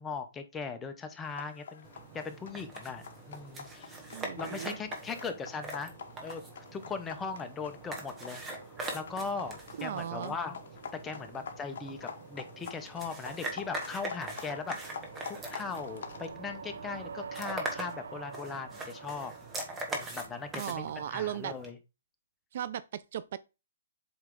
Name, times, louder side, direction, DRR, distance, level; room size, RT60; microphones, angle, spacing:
voice 1, 0.0-1.9 2.1-4.0 4.3-5.9 6.2-8.4 8.9-10.6 11.0-15.0 15.5-19.3 19.9-21.8, left 5 dB, 10° left, 0.8 m, -39 dB
sound 1, 1.2-16.3, left 6 dB, 60° left, 1.0 m, -47 dB
Hair Brush, 1.8-21.7, right 2 dB, 10° right, 1.3 m, -43 dB
voice 2, 4.1-4.8 9.8-10.3 20.6-21.5 22.5-23.4, right 10 dB, 50° right, 0.4 m, -36 dB
sound 2, 5.6-20.5, right 5 dB, 85° right, 0.6 m, -49 dB
7.9 x 3.2 x 3.8 m
hypercardioid pair, 160°, 0 cm